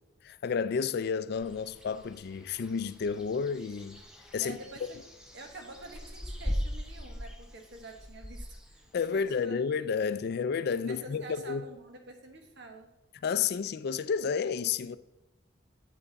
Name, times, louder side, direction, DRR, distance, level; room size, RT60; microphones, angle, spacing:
voice 1, 0.2-4.0 4.3-4.6 8.9-11.6 13.2-15.0, left 6 dB, 55° left, 0.4 m, -31 dB
sound 1, 1.3-9.4, equal, 5° right, 0.8 m, -40 dB
voice 2, 4.4-5.0 5.3-9.8 10.9-12.9, right 2 dB, 65° right, 1.3 m, -48 dB
7.8 x 5.7 x 4.0 m
head